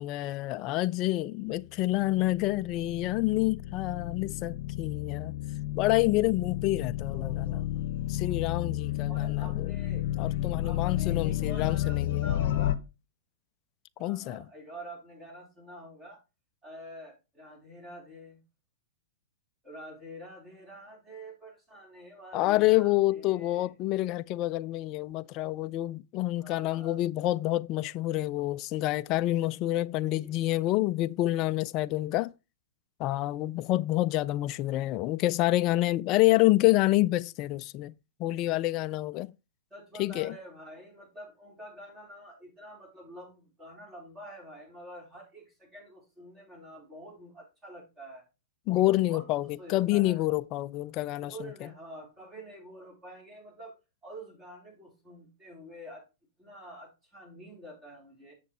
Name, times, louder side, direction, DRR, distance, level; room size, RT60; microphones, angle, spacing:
voice 1, 0.0-5.3 5.8-7.6 8.1-9.7 10.2-12.2 14.0-14.4 22.3-32.3 33.0-37.9 38.2-39.3 40.0-40.3 48.7-51.3, left 17 dB, 40° left, 0.4 m, -28 dB
sound 1, 1.9-12.7, left 13 dB, 60° left, 0.8 m, -32 dB
voice 2, 7.1-7.8 9.1-10.1 10.6-12.8 14.0-16.2 16.6-18.4 19.6-23.7 26.3-27.0 30.0-30.4 34.0-34.2 39.7-48.3 48.8-50.2 51.2-53.8 54.0-56.0 56.4-58.3, equal, 15° right, 4.2 m, -47 dB
7.1 x 6.8 x 4.2 m
hypercardioid pair, 115°, 0 cm